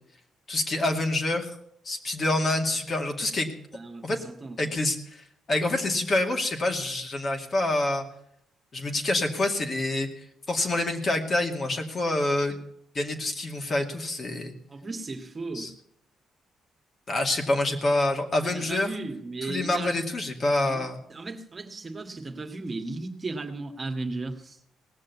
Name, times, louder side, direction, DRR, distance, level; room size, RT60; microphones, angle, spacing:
voice 1, 0.5-1.5 1.8-3.5 4.0-4.2 4.6-8.0 8.7-10.1 10.5-12.6 12.9-14.5 15.5-15.7 17.1-18.9 19.4-21.0, left 2 dB, 40° left, 3 dB, 2.4 m, -27 dB
voice 2, 3.7-4.7 14.7-15.7 18.4-20.0 20.6-24.6, right 3 dB, 30° right, 5 dB, 1.8 m, -36 dB
18.5 x 6.6 x 9.4 m, 0.72 s
cardioid pair, 90°, 0 cm